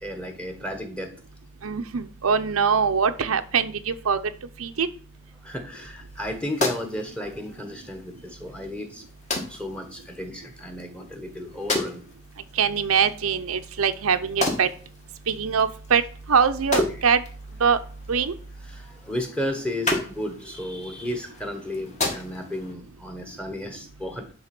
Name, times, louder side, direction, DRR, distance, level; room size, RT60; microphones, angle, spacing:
voice 1, 0.0-1.1 5.4-9.0 9.5-12.0 18.6-24.3, left 1 dB, 5° left, 6 dB, 1.2 m, -33 dB
voice 2, 1.6-4.2 4.6-4.9 12.6-14.7 15.3-16.0 16.3-17.2 17.6-17.8 18.1-18.3, right 6 dB, 85° right, 9 dB, 0.7 m, -22 dB
sound 1, 6.1-22.7, left 2 dB, 30° left, 1.8 m, -34 dB
10.5 x 3.6 x 6.0 m, 0.42 s
head